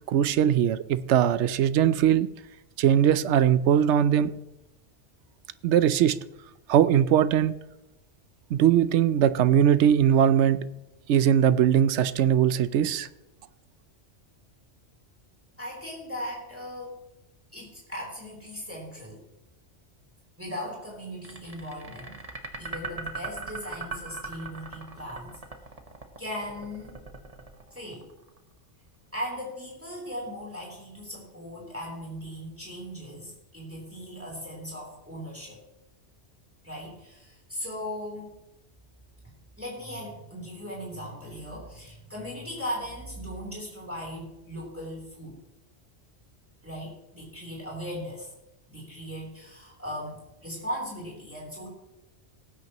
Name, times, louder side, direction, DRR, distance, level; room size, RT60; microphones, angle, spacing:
voice 1, 0.1-2.3 2.8-4.4 5.6-6.2 6.7-7.5 8.5-10.7 11.1-13.1, right 9 dB, 80° right, 16 dB, 0.9 m, -21 dB
voice 2, 15.6-16.9 17.5-19.2 20.4-22.2 22.6-25.4 26.2-26.9 27.7-28.0 29.1-35.6 36.6-38.3 39.6-45.4 46.6-48.3 48.7-51.7, equal, 10° right, -4 dB, 3.4 m, -38 dB
sound 1, 21.2-28.4, right 4 dB, 35° right, 1.2 m, -39 dB
18.5 x 9.3 x 2.9 m, 0.93 s
omnidirectional pair, 1.2 m